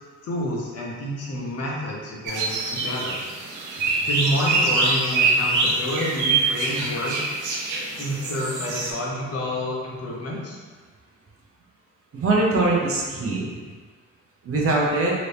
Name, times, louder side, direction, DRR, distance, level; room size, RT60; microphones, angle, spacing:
voice 1, 0.2-3.2 4.0-7.5 8.0-10.6, equal, 55° left, -3 dB, 0.9 m, -29 dB
sound 1, 2.3-8.9, right 3 dB, 85° right, 0.6 m, -24 dB
voice 2, 12.1-13.5 14.4-15.1, right 2 dB, 50° right, -3 dB, 0.8 m, -22 dB
3.0 x 2.6 x 3.3 m, 1.5 s
cardioid pair, 90°, 30 cm